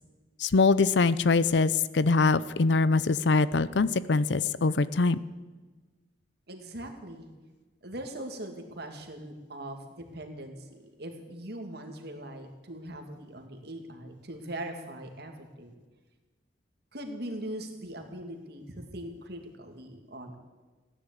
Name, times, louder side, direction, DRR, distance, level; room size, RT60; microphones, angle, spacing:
voice 1, 0.4-5.2, left 4 dB, 70° left, 17 dB, 0.6 m, -23 dB
voice 2, 6.5-7.3 7.8-9.8 10.1-15.7 16.9-20.4, right 1 dB, 60° right, 4 dB, 2.3 m, -41 dB
16.0 x 10.5 x 8.3 m, 1.3 s
head